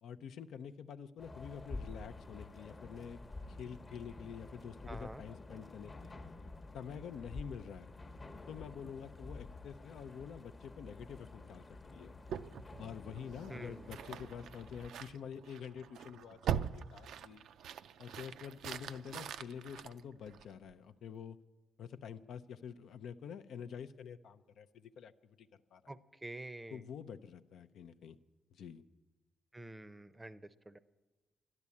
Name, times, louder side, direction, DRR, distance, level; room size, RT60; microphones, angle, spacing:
voice 1, 0.0-3.2 3.5-6.2 6.7-7.9 8.5-12.1 12.8-17.4 18.0-21.4 21.8-25.8 26.7-28.2 28.5-28.8, left 7 dB, 80° left, 10 dB, 0.5 m, -47 dB
sound 1, 1.2-14.9, left 2 dB, 30° left, 0.9 m, -50 dB
voice 2, 4.9-5.2 13.5-14.0 25.9-26.8 29.5-30.8, right 2 dB, 15° right, 14 dB, 0.6 m, -48 dB
sound 2, 12.3-20.7, right 9 dB, 80° right, 0.4 m, -43 dB
12.0 x 11.0 x 8.5 m, 1.2 s
cardioid pair, 90°, 0 cm